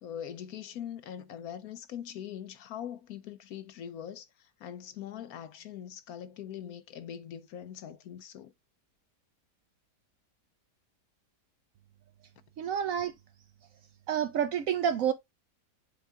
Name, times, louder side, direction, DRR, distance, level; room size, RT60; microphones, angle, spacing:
voice 1, 0.0-8.5, left 9 dB, 70° left, 1.0 m, -42 dB
voice 2, 12.6-13.1 14.1-15.1, right 9 dB, 70° right, 0.8 m, -28 dB
7.3 x 3.7 x 3.5 m
omnidirectional pair, 1.8 m